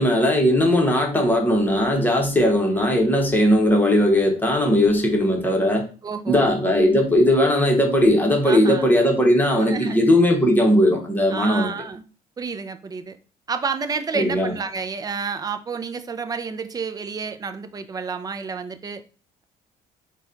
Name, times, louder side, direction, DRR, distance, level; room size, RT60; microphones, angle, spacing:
voice 1, 0.0-5.8 6.3-11.7 14.1-14.5, left 1 dB, 10° left, 1.1 m, -18 dB
voice 2, 6.0-6.5 8.4-8.9 9.7-10.0 11.3-12.0 12.4-13.2 13.5-19.0, right 5 dB, 20° right, 0.4 m, -30 dB
4.0 x 2.3 x 3.8 m
cardioid pair, 110°, 17 cm